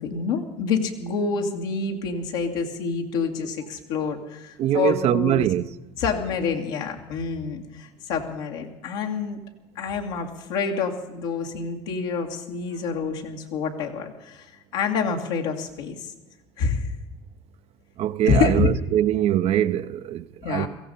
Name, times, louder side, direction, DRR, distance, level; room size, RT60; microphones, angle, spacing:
voice 1, 0.0-5.5 6.0-9.4 9.8-14.5 14.7-16.1 16.6-16.9 18.2-18.7 20.4-20.7, left 5 dB, 85° left, 2.2 m, -27 dB
voice 2, 4.6-5.7 18.0-20.7, right 11 dB, 60° right, 0.7 m, -23 dB
17.0 x 15.0 x 5.5 m
supercardioid pair, 80°, 12 cm